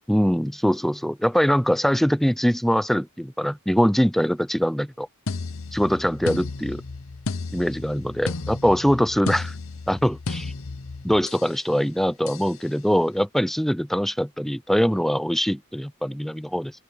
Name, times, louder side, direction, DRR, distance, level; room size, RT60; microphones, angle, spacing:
voice 1, 0.1-5.1 5.7-6.8 7.5-9.5 9.9-10.5 11.0-16.7, equal, ahead, 0.6 m, -22 dB
sound 1, 5.3-11.6 12.3-12.6, left 3 dB, 65° left, 0.9 m, -33 dB
open air
head